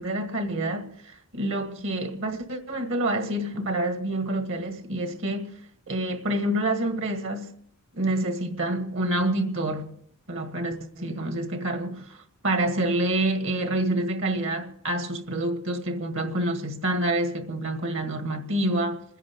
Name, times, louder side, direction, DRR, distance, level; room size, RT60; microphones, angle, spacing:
voice 1, 0.0-5.6 5.9-7.5 7.9-9.9 10.3-19.0, right 1 dB, 65° right, 1.8 m, -27 dB
27.5 x 10.5 x 3.7 m
head